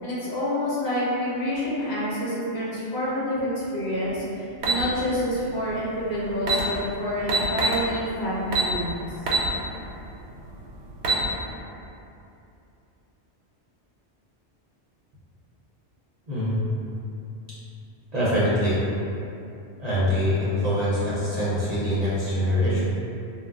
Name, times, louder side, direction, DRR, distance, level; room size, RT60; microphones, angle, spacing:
voice 1, 0.0-8.9, equal, 70° left, -8 dB, 1.0 m, -28 dB
sound 1, 4.6-4.8 6.0-6.1 6.4-6.6 7.3-7.8 8.5-8.7 9.3-9.5 9.9-10.0 10.8-11.2, right 3 dB, 80° right, 0.9 m, -22 dB
voice 2, 16.3-16.6 18.1-18.8 19.8-22.8, equal, 45° right, -11 dB, 0.7 m, -24 dB
2.3 x 2.1 x 3.6 m, 2.7 s
omnidirectional pair, 1.2 m